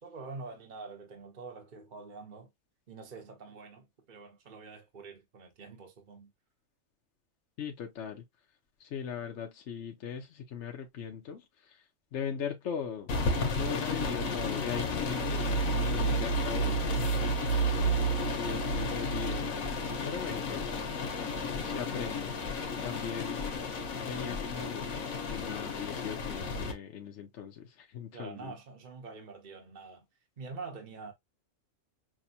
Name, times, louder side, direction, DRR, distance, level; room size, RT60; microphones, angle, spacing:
voice 1, 0.0-2.5 2.9-6.3 28.1-30.0 30.4-31.1, right 4 dB, 40° right, 1.1 m, -46 dB
voice 2, 7.6-8.2 8.8-13.1 13.5-17.1 18.4-19.5 20.0-20.8 21.6-22.4 22.8-23.4 24.0-24.9 25.3-28.5, left 7 dB, 60° left, 1.0 m, -39 dB
sound 1, 13.1-26.7, equal, 85° left, 1.4 m, -31 dB
6.0 x 2.2 x 2.8 m
omnidirectional pair, 1.4 m